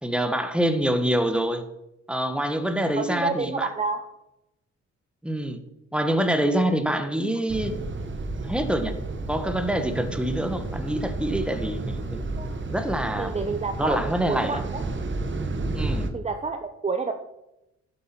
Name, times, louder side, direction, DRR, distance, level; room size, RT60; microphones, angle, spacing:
voice 1, 0.0-1.6 2.1-3.7 5.2-5.6 5.9-7.8 8.4-9.0 9.3-12.2 12.7-13.4 13.8-14.6 15.7-16.1, right 1 dB, 5° right, 9 dB, 1.4 m, -26 dB
voice 2, 3.0-4.1 12.3-12.5 13.2-14.8 16.1-17.1, right 4 dB, 20° right, 7 dB, 0.9 m, -29 dB
sound 1, 7.5-16.1, right 2 dB, 40° right, 1.4 m, -31 dB
11.0 x 8.0 x 6.0 m, 0.89 s
cardioid pair, 90°, 30 cm